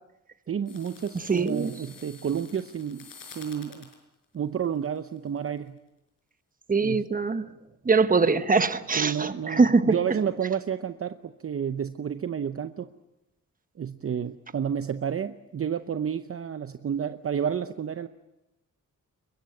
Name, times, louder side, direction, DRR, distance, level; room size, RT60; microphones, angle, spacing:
voice 1, 0.5-3.9 4.3-5.8 6.8-7.0 9.0-12.9 13.8-18.1, right 8 dB, 45° right, 0.8 m, -30 dB
sound 1, 0.7-3.9 4.7-5.4, left 5 dB, 80° left, 5.7 m, -49 dB
voice 2, 1.3-1.7 6.7-7.4 7.8-9.9, right 4 dB, 25° right, 1.2 m, -22 dB
22.5 x 22.0 x 9.5 m
wide cardioid pair, 135°, 33 cm